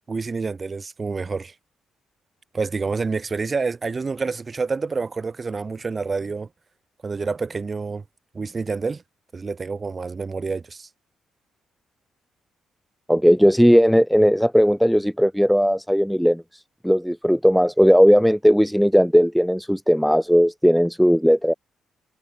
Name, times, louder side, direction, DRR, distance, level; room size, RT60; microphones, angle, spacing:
voice 1, 0.1-1.5 2.5-6.5 7.0-8.0 8.3-9.0 9.3-10.9, right 4 dB, 30° right, 3.4 m, -28 dB
voice 2, 13.1-21.5, equal, ahead, 0.3 m, -17 dB
cardioid pair, 90°, 0 cm